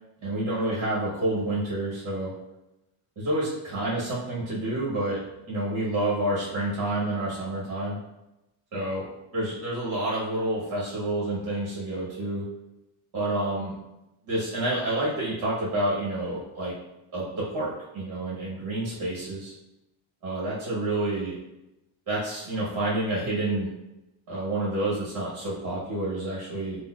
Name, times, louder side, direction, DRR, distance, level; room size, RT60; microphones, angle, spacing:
voice 1, 0.2-2.3 3.2-8.0 8.7-12.5 13.1-13.7 14.3-16.7 17.1-19.5 20.2-21.3 22.1-23.7 24.3-26.8, right 1 dB, 45° right, -7 dB, 0.9 m, -29 dB
3.9 x 2.1 x 2.2 m, 0.94 s
cardioid pair, 175°, 49 cm